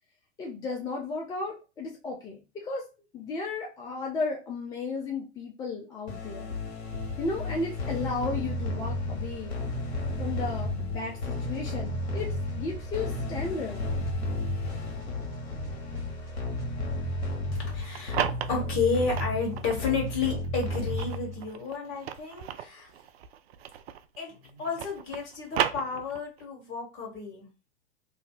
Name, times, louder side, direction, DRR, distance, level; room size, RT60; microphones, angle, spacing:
voice 1, 0.4-2.8 3.1-6.5 7.2-9.5 10.2-13.9, left 3 dB, 10° left, -1 dB, 0.3 m, -34 dB
sound 1, 6.1-21.5, left 1 dB, 65° left, 1.2 m, -33 dB
sound 2, 11.5-13.8 14.1-16.3 16.6-16.9 17.2-18.8 19.1-19.5 19.7-21.4, right 7 dB, 10° right, 1.2 m, -51 dB
voice 2, 17.5-22.9 24.2-27.5, left 5 dB, 40° left, 0 dB, 1.5 m, -32 dB
sound 3, 17.7-19.8 20.4-24.2 24.4-26.4, right 9 dB, 65° right, 0.5 m, -34 dB
2.7 x 2.1 x 3.7 m, 0.31 s
figure-of-eight pair, 95°, 33 cm